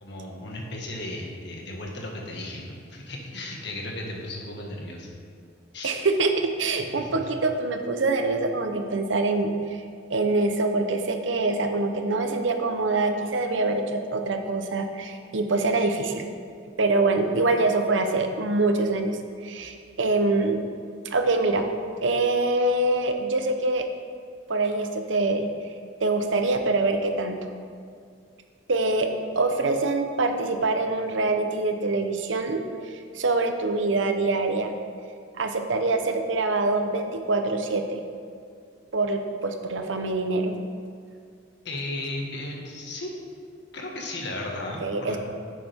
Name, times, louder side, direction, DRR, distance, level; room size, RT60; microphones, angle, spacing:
voice 1, 0.0-5.1 5.7-5.9 6.9-7.1 41.7-43.1 43.7-45.2, left 1 dB, 65° left, -1 dB, 1.7 m, -35 dB
voice 2, 5.8-9.5 10.1-16.2 16.8-20.6 21.0-21.7 22.0-23.9 24.5-25.5 26.0-27.4 28.7-34.7 35.3-38.0 38.9-40.6 44.8-45.2, right 3 dB, 90° right, 6 dB, 0.8 m, -25 dB
10.5 x 8.5 x 3.6 m, 2.3 s
head